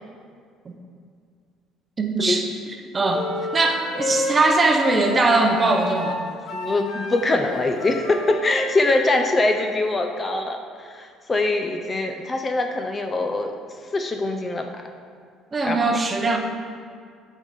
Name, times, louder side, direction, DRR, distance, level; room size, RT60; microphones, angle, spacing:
voice 1, 2.0-2.5 2.9-3.3 3.5-6.2 15.5-16.4, right 3 dB, 25° right, 4 dB, 0.7 m, -20 dB
sound 1, 3.1-9.6, left 2 dB, 55° left, 0.9 m, -31 dB
voice 2, 6.5-13.5 13.9-14.8 15.6-16.0, left 2 dB, 25° left, 4 dB, 0.5 m, -23 dB
7.7 x 5.2 x 4.3 m, 2.2 s
cardioid pair, 125°, 0 cm